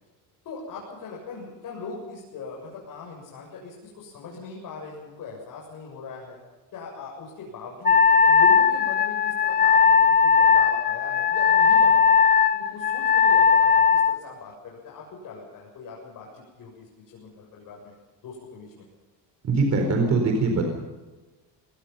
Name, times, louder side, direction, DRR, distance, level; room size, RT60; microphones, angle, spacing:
voice 1, 0.4-6.4 6.7-12.2 12.5-17.9 18.2-18.9, left 4 dB, 50° left, -3 dB, 7.6 m, -40 dB
Wind instrument woodwind instrument, 7.8-14.2, left 6 dB, 25° left, 0.8 m, -18 dB
voice 2, 19.4-20.6, right 3 dB, 40° right, 3 dB, 4.4 m, -22 dB
25.5 x 19.5 x 5.7 m, 1.2 s
cardioid pair, 135°, 41 cm